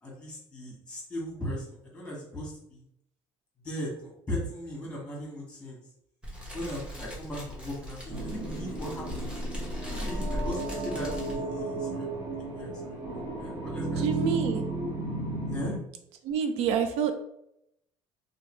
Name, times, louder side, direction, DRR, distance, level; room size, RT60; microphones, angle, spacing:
voice 1, 0.0-2.8 3.6-5.8 6.5-9.3 9.9-12.2 12.5-14.4 15.5-15.7, equal, 10° left, -2 dB, 1.4 m, -38 dB
Fire, 6.2-11.3, equal, 10° right, 1.2 m, -42 dB
sound 1, 8.1-15.8, right 2 dB, 40° right, 1.4 m, -33 dB
voice 2, 14.0-14.6 16.2-17.1, right 7 dB, 75° right, 7 dB, 0.4 m, -27 dB
3.1 x 2.7 x 3.1 m, 0.76 s
cardioid pair, 120°, 11 cm